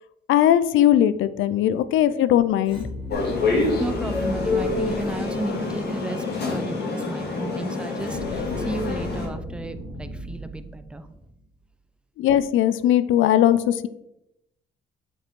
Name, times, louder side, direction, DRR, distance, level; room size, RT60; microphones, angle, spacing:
voice 1, 0.3-2.9 12.2-13.9, left 11 dB, 80° left, 14 dB, 0.5 m, -19 dB
sound 1, 2.6-6.0 8.0-11.3, left 1 dB, 25° left, 2.8 m, -36 dB
sound 2, 3.1-9.3, left 3 dB, 55° left, 2.4 m, -26 dB
voice 2, 3.8-11.1, right 1 dB, 5° right, 10 dB, 0.6 m, -33 dB
7.9 x 5.0 x 3.7 m, 0.85 s
cardioid pair, 90°, 20 cm